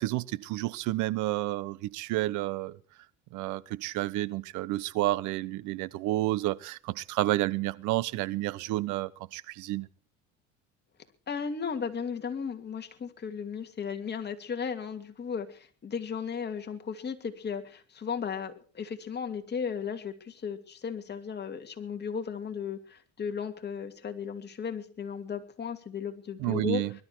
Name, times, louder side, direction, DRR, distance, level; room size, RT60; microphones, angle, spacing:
voice 1, 0.0-2.7 3.3-9.9 26.4-26.9, right 17 dB, 65° right, 1.0 m, -30 dB
voice 2, 11.3-26.8, left 6 dB, 30° left, 2.5 m, -35 dB
21.0 x 12.5 x 4.6 m
supercardioid pair, 95°, 32 cm